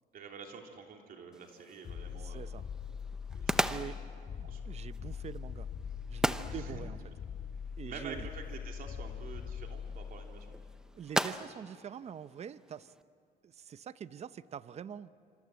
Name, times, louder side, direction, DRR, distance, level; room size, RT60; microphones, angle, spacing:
voice 1, 0.1-2.5 3.3-3.8 4.4-4.9 6.5-6.8 7.8-10.5, right 5 dB, 55° right, 2 dB, 3.2 m, -48 dB
sound 1, 1.3-13.0, right 1 dB, 5° right, 0.8 m, -39 dB
sound 2, 1.8-10.9, left 7 dB, 45° left, 1.1 m, -42 dB
voice 2, 2.1-2.6 3.5-4.0 4.4-5.7 6.1-7.0 7.8-8.3 10.9-12.9 13.4-15.1, right 8 dB, 40° right, 15 dB, 0.7 m, -45 dB
26.0 x 26.0 x 7.7 m, 2.3 s
cardioid pair, 110°, 17 cm